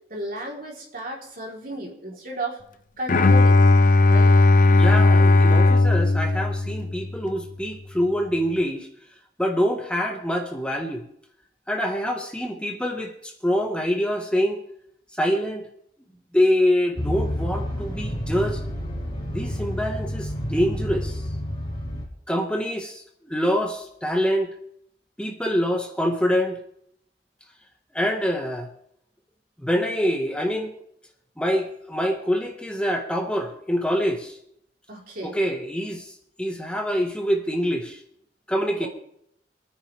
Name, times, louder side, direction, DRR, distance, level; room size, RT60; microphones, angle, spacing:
voice 1, 0.1-2.6 3.0-4.4 34.9-35.4 38.8-38.9, right 1 dB, 50° right, -2 dB, 3.8 m, -34 dB
Bowed string instrument, 3.1-7.2, left 2 dB, 50° left, 0.7 m, -16 dB
voice 2, 4.8-8.9 9.4-11.0 11.7-14.6 15.2-15.7 16.3-18.6 19.3-21.2 22.3-24.5 25.2-26.6 27.9-28.7 29.6-30.7 31.4-34.4 35.2-36.1 36.4-38.0 38.5-38.9, equal, 5° left, 2 dB, 1.6 m, -25 dB
sound 1, 17.0-22.1, equal, 30° left, 4.2 m, -29 dB
26.5 x 9.6 x 3.5 m, 0.71 s
head